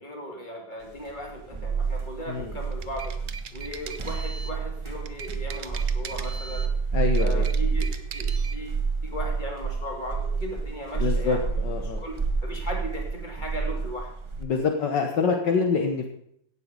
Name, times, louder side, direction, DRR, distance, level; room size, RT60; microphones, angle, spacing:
voice 1, 0.0-3.1 3.5-6.7 7.1-11.5 12.0-12.1 12.4-14.1, equal, 25° left, 0 dB, 2.8 m, -37 dB
sound 1, 0.9-14.4, right 5 dB, 20° right, 0.8 m, -29 dB
sound 2, 2.6-4.6 5.1-6.7 7.1-8.6, right 5 dB, 60° right, 0.7 m, -40 dB
voice 2, 6.9-7.5 10.9-12.0 14.4-16.1, left 5 dB, 70° left, 4 dB, 1.7 m, -26 dB
16.5 x 7.2 x 5.2 m, 0.69 s
omnidirectional pair, 2.0 m